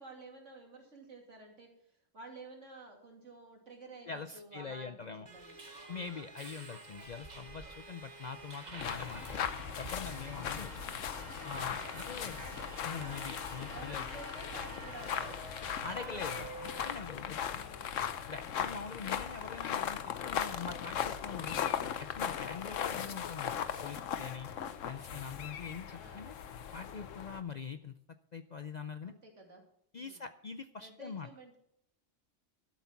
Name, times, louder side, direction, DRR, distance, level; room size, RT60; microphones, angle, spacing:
voice 1, 0.0-5.8 8.9-9.2 10.7-11.1 12.0-12.8 13.7-15.7 17.5-18.0 22.9-23.2 26.0-26.3 29.0-29.6 29.9-30.3 30.8-31.6, right 2 dB, 75° right, 1 dB, 3.0 m, -52 dB
voice 2, 4.1-5.3 5.9-9.5 9.8-10.7 11.4-12.4 12.8-14.0 15.8-17.7 18.3-21.7 22.0-24.5 24.8-26.3 26.7-28.0 28.3-29.1 29.9-31.3, left 5 dB, 50° left, 10 dB, 0.5 m, -44 dB
Subway metro underground, 5.3-16.9, right 2 dB, 35° right, 1.4 m, -48 dB
sound 1, 8.8-27.4, left 8 dB, 85° left, 1.2 m, -38 dB
12.5 x 8.3 x 5.9 m, 0.72 s
omnidirectional pair, 1.3 m